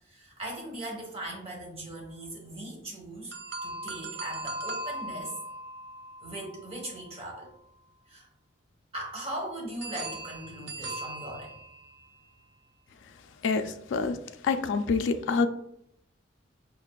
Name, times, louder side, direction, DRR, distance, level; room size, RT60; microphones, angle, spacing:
voice 1, 0.1-3.3 3.6-5.4 6.2-7.5 8.1-8.3 8.9-11.6, right 1 dB, 30° right, -1 dB, 0.9 m, -39 dB
sound 1, 3.3-7.4 9.8-12.1, right 2 dB, 60° right, 0.4 m, -39 dB
voice 2, 13.4-15.5, left 4 dB, 75° left, 8 dB, 0.3 m, -27 dB
5.7 x 2.4 x 2.2 m, 0.74 s
head